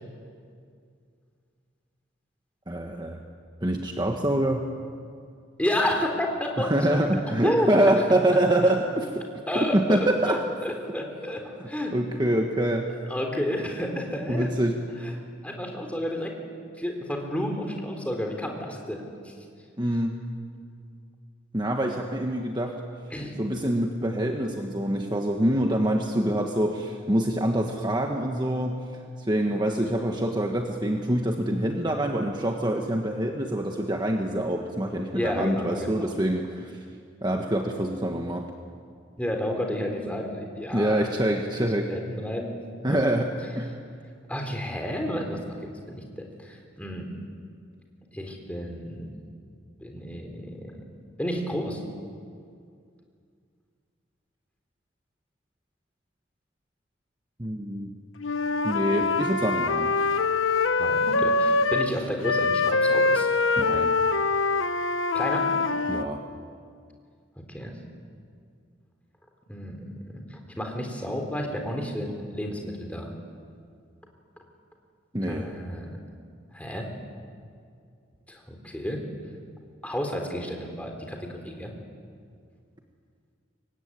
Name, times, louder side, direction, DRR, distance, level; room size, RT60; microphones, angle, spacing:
voice 1, 2.7-3.2 3.6-4.6 6.6-9.3 9.7-10.4 11.9-12.9 14.3-14.8 19.8-20.2 21.5-22.8 23.4-36.8 37.2-38.5 40.7-41.9 42.8-43.3 43.5-43.7 57.4-57.9 58.6-59.9 63.6-63.9 65.9-66.2 75.1-75.5, right 1 dB, 20° right, 2 dB, 1.4 m, -25 dB
voice 2, 5.6-6.7 7.1-7.7 9.5-10.0 10.3-12.0 13.1-14.5 15.0-15.1 15.4-16.3 16.8-19.3 23.1-23.3 35.1-36.0 39.2-41.1 41.6-42.6 42.9-43.0 44.3-47.1 48.1-49.1 49.8-50.8 51.2-51.8 60.8-63.3 65.1-65.5 67.5-67.7 69.5-69.9 70.1-73.1 75.2-76.0 76.5-76.9 78.3-79.0 79.8-81.7, equal, 5° left, 2 dB, 3.8 m, -31 dB
Wind instrument woodwind instrument, 58.2-61.9 62.2-66.1, left 3 dB, 90° left, 1.0 m, -24 dB
25.5 x 22.5 x 9.9 m, 2.3 s
head